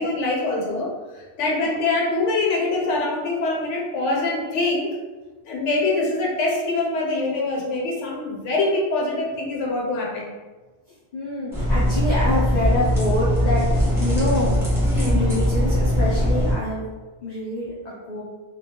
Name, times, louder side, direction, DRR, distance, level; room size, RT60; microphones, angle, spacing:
voice 1, 0.0-5.0 5.4-10.3 14.8-15.2, left 2 dB, 90° left, -2 dB, 0.9 m, -24 dB
voice 2, 10.9-13.7 14.0-14.6 15.0-16.9 17.2-17.7 18.1-18.2, left 1 dB, 60° left, -7 dB, 0.4 m, -26 dB
sound 1, 11.5-16.5, equal, 5° right, 0.7 m, -20 dB
2.2 x 2.2 x 2.8 m, 1.3 s
omnidirectional pair, 1.2 m